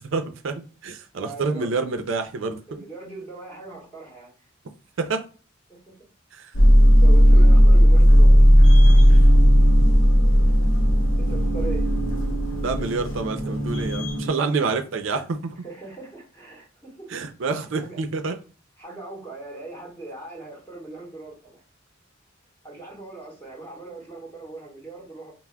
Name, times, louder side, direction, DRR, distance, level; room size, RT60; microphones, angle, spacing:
voice 1, 0.0-2.8 5.0-5.2 6.3-6.5 9.1-9.2 12.6-15.6 17.1-18.3, right 4 dB, 65° right, 7 dB, 0.5 m, -28 dB
voice 2, 1.1-1.7 2.7-4.3 5.7-5.9 7.0-8.5 11.2-11.8 15.6-17.1 17.7-18.0 18.8-21.6 22.6-25.3, right 2 dB, 15° left, -3 dB, 1.6 m, -40 dB
sound 1, 6.5-14.3, equal, 70° left, 0.8 m, -15 dB
5.7 x 2.0 x 2.2 m, 0.37 s
head